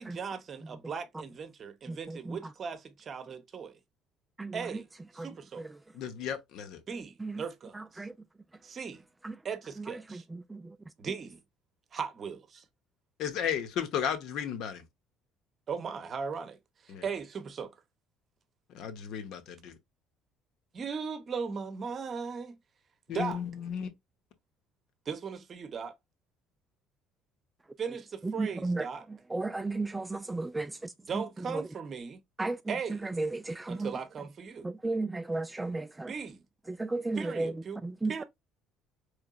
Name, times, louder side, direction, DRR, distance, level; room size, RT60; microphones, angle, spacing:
voice 1, 0.0-3.8 4.5-4.9 5.1-5.6 6.9-8.1 8.6-9.0 9.4-10.2 11.0-11.4 11.9-12.6 15.7-16.6 16.8-17.7 20.7-22.6 23.1-23.4 25.1-25.9 27.8-29.1 31.0-32.2 32.7-33.1 33.7-34.7 36.1-36.4 37.1-37.8 38.1-38.2, right 6 dB, 45° right, 0.8 m, -38 dB
voice 2, 1.9-2.4 4.4-4.5 5.2-5.3 7.2-7.4 8.0-8.1 9.2-9.3 10.1-10.2 10.5-10.6 28.4-28.9 29.3-30.9 32.4-32.6 33.2-33.9 34.6-36.1 36.7-37.5 37.8-38.1, right 2 dB, 15° right, 0.3 m, -33 dB
voice 3, 5.9-6.8 13.2-14.8 16.9-17.0 18.7-19.8 23.1-23.9, left 8 dB, 60° left, 0.9 m, -34 dB
4.5 x 3.2 x 2.4 m
hypercardioid pair, 55°, 0 cm